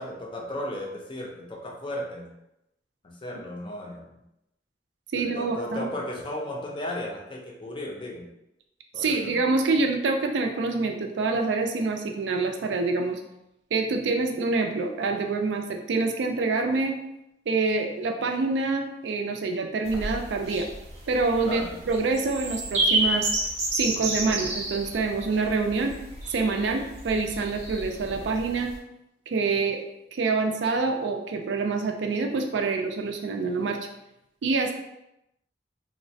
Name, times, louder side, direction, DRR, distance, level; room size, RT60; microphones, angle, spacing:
voice 1, 0.0-2.3 3.0-4.2 5.1-8.3 8.9-9.4 21.4-21.7, left 1 dB, 30° left, 0 dB, 0.4 m, -35 dB
voice 2, 5.1-5.9 9.0-13.2 13.7-17.0 17.5-20.7 21.1-23.3 23.7-26.0 26.3-28.7 29.3-29.8 30.1-33.8 34.4-34.7, right 3 dB, 80° right, 4 dB, 0.4 m, -26 dB
sound 1, 19.8-28.8, right 2 dB, 35° right, 0.6 m, -30 dB
3.0 x 2.1 x 2.6 m, 0.87 s
head